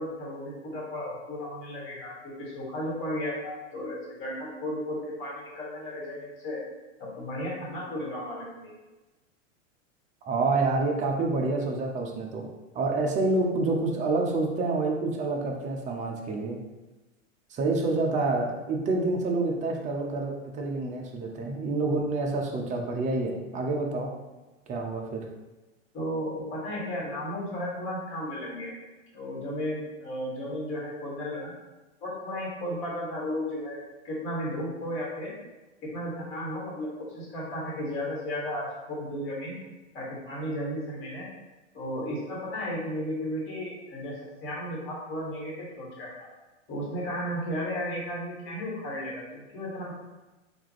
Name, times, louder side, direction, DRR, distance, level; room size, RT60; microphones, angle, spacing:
voice 1, 0.0-6.6 7.0-8.7 25.9-28.7 29.1-31.5 32.0-33.8 34.0-35.3 35.8-39.6 39.9-41.3 41.7-44.1 44.4-46.3 46.7-49.9, equal, 35° left, -5 dB, 1.4 m, -34 dB
voice 2, 10.2-12.5 12.7-16.6 17.5-24.1 24.7-25.2, right 3 dB, 20° right, 1 dB, 0.4 m, -28 dB
3.5 x 2.5 x 3.2 m, 1.1 s
hypercardioid pair, 115°, 38 cm